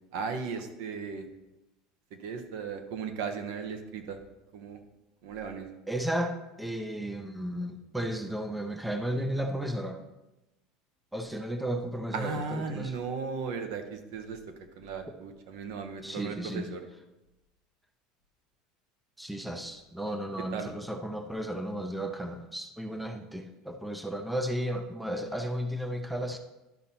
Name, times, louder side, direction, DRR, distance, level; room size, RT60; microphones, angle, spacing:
voice 1, 0.1-1.3 2.1-4.2 4.5-4.8 5.2-5.8 12.1-14.4 14.8-16.9 20.4-20.7, right 5 dB, 70° right, 6 dB, 1.0 m, -36 dB
voice 2, 5.9-10.0 11.1-12.9 16.0-16.7 19.2-26.4, right 1 dB, 5° right, 5 dB, 0.5 m, -34 dB
12.0 x 5.4 x 2.9 m, 1.0 s
supercardioid pair, 145°, 0 cm